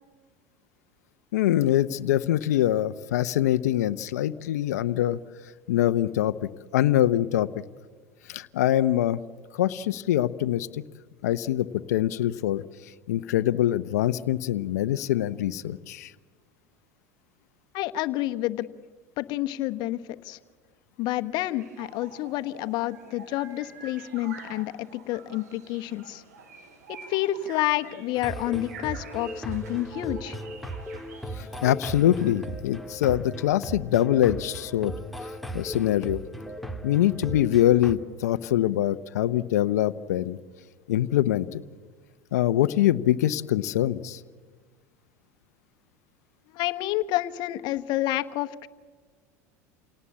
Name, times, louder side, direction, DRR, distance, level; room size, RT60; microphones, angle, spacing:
voice 1, 1.3-5.2 5.7-6.3 6.7-7.5 8.3-9.2 9.5-10.8 11.2-16.1 31.3-35.0 35.2-36.2 36.8-40.4 40.9-41.6 42.3-44.2, left 12 dB, 85° left, 12 dB, 0.7 m, -24 dB
voice 2, 17.7-18.7 19.2-20.4 21.0-26.2 26.9-30.4 46.5-48.7, left 15 dB, 60° left, 10 dB, 1.2 m, -29 dB
sound 1, 21.3-32.4, right 5 dB, 90° right, 4.2 m, -48 dB
sound 2, 28.1-37.9, right 1 dB, ahead, 1.9 m, -37 dB
28.5 x 18.0 x 8.6 m, 1.5 s
hypercardioid pair, 95°, 9 cm